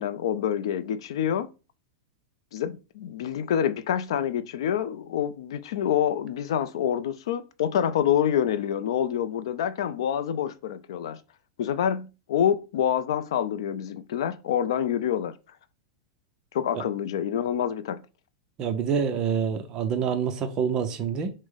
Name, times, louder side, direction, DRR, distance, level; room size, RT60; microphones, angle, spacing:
voice 1, 0.0-1.5 2.5-11.2 11.6-15.4 16.5-18.0, left 9 dB, 70° left, 0.4 m, -27 dB
voice 2, 18.6-21.3, right 7 dB, 25° right, 0.6 m, -27 dB
6.1 x 2.1 x 3.9 m
supercardioid pair, 165°, 3 cm